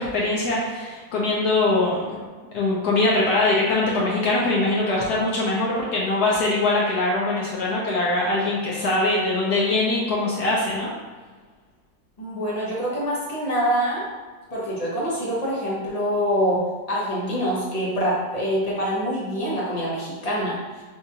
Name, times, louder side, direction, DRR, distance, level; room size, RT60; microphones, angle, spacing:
voice 1, 0.0-2.2 2.5-10.9, left 2 dB, 65° left, -5 dB, 1.2 m, -22 dB
voice 2, 12.2-14.0 14.5-20.6, equal, 30° left, -6 dB, 0.8 m, -25 dB
5.7 x 2.5 x 2.8 m, 1.4 s
omnidirectional pair, 2.0 m